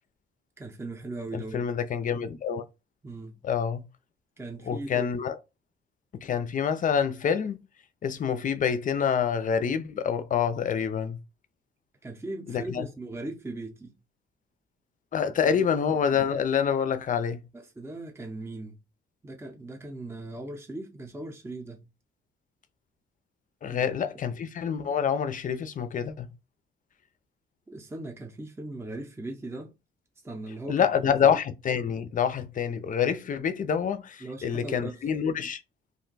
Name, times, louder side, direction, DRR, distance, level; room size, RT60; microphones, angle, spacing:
voice 1, 0.6-1.7 3.0-3.4 4.4-5.1 12.0-14.0 15.5-15.6 17.5-18.8 19.2-21.9 23.7-23.9 27.7-29.7 30.2-31.4 34.2-35.0, right 2 dB, 10° right, 0.7 m, -39 dB
voice 2, 1.3-2.6 3.4-3.9 4.7-5.4 6.2-7.6 8.0-11.2 12.5-12.9 15.1-17.4 23.6-26.3 30.7-35.6, left 7 dB, 40° left, 0.5 m, -27 dB
2.5 x 2.2 x 3.9 m
cardioid pair, 90°, 20 cm